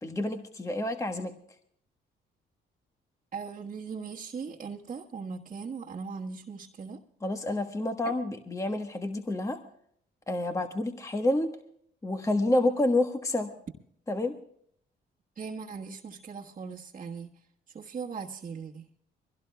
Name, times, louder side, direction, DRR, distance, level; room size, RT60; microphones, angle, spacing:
voice 1, 0.0-1.3 7.2-9.6 10.3-11.5 12.0-13.5 14.1-14.3, left 2 dB, 15° left, 6 dB, 1.2 m, -28 dB
voice 2, 3.3-7.0 15.4-17.3 17.7-18.9, right 5 dB, 40° right, -4 dB, 1.5 m, -39 dB
23.5 x 17.0 x 2.3 m, 0.65 s
cardioid pair, 90°, 20 cm